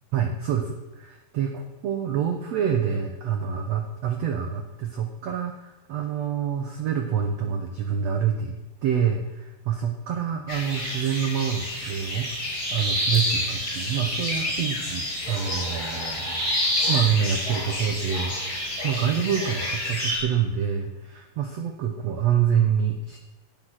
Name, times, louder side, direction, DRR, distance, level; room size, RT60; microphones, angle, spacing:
voice 1, 0.1-16.4 16.9-23.2, right 8 dB, 85° right, 4 dB, 1.4 m, -27 dB
sound 1, 10.5-20.2, left 1 dB, 25° left, 5.1 m, -28 dB
15.5 x 8.5 x 5.9 m, 1.1 s
omnidirectional pair, 4.4 m